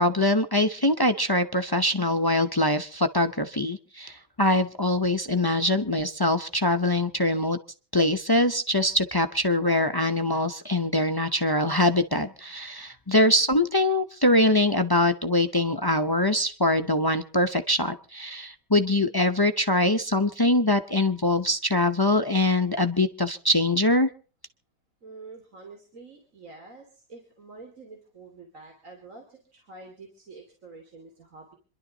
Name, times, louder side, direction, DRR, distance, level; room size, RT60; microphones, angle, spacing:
voice 1, 0.0-7.6 7.9-24.1, left 1 dB, 35° left, 9 dB, 0.3 m, -23 dB
voice 2, 25.0-31.6, right 3 dB, 50° right, 2 dB, 3.0 m, -47 dB
27.0 x 12.0 x 3.9 m, 0.40 s
omnidirectional pair, 1.8 m